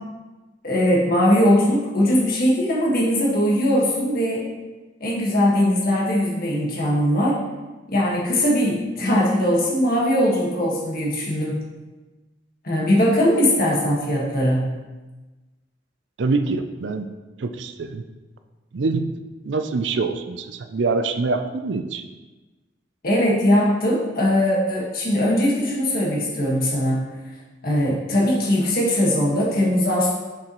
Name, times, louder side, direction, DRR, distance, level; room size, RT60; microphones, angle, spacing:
voice 1, 0.6-4.4 5.0-7.4 7.9-11.6 12.6-14.6 23.0-27.0 27.6-30.1, equal, 55° left, -4 dB, 1.7 m, -20 dB
voice 2, 16.2-17.1 17.4-18.0 18.7-19.1 19.4-22.0, right 3 dB, 75° right, 8 dB, 0.5 m, -25 dB
6.9 x 5.8 x 3.1 m, 1.2 s
head